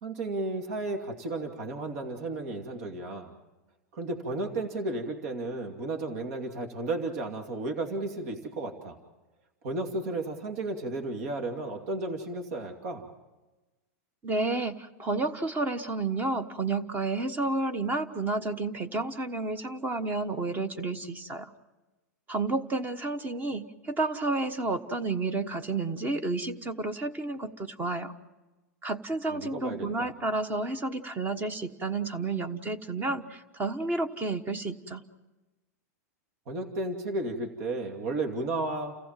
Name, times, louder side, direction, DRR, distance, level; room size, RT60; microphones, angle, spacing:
voice 1, 0.0-3.3 3.9-9.0 9.6-13.0 29.3-30.1 36.5-38.9, right 2 dB, 65° right, 3 dB, 2.6 m, -33 dB
voice 2, 14.2-21.5 22.3-28.1 28.8-35.0, right 3 dB, 20° right, 12 dB, 1.2 m, -31 dB
29.5 x 15.0 x 7.5 m, 1.1 s
hypercardioid pair, 130°, 9 cm